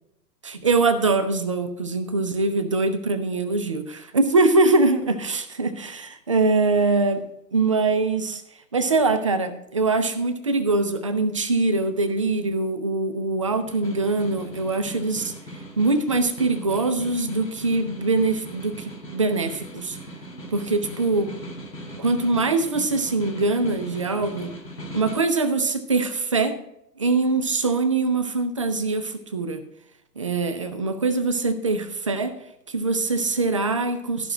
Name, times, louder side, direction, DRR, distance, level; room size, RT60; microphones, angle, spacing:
voice 1, 0.4-7.2 7.5-8.4 8.7-15.3 15.8-20.0 20.5-21.3 22.0-24.5 24.9-26.6 27.0-29.6 30.2-32.4 32.7-34.3, right 3 dB, 20° right, 9 dB, 0.4 m, -23 dB
Snare drum, 13.5-25.3, equal, 80° left, 3.0 m, -40 dB
13.5 x 5.8 x 4.8 m, 0.79 s
figure-of-eight pair, 110°, 50 cm